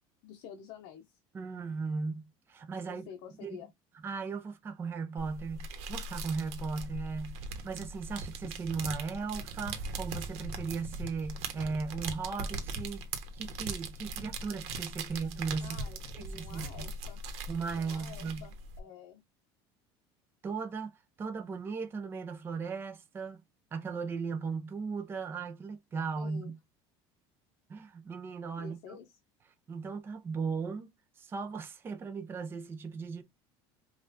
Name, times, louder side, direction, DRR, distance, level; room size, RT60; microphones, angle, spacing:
voice 1, 0.2-1.2 2.8-3.7 15.6-17.2 17.8-19.2 26.2-26.5 28.6-29.2, left 8 dB, 60° left, 0.7 m, -49 dB
voice 2, 1.3-3.1 3.4-3.6 4.0-13.1 13.3-15.8 16.1-16.9 17.5-18.4 20.4-23.4 23.7-26.6 27.7-29.0 29.7-30.9 31.2-33.2, right 5 dB, 20° right, 0.6 m, -37 dB
Rustling plastic, 5.2-18.8, right 3 dB, 65° right, 1.1 m, -40 dB
5.4 x 2.4 x 2.5 m
cardioid pair, 160°, 12 cm